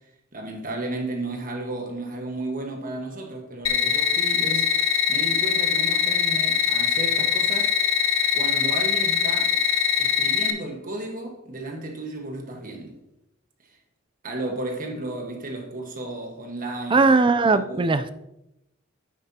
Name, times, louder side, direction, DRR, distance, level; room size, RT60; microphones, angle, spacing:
voice 1, 0.3-7.7 8.3-9.6 10.0-13.0 13.7-13.8 14.2-17.1 17.5-17.9, right 2 dB, 45° right, 1.4 m, -33 dB
sound 1, 3.7-10.5, left 7 dB, 90° left, 0.8 m, -22 dB
voice 2, 16.9-18.1, right 3 dB, 25° right, 0.4 m, -19 dB
9.7 x 8.0 x 2.8 m
head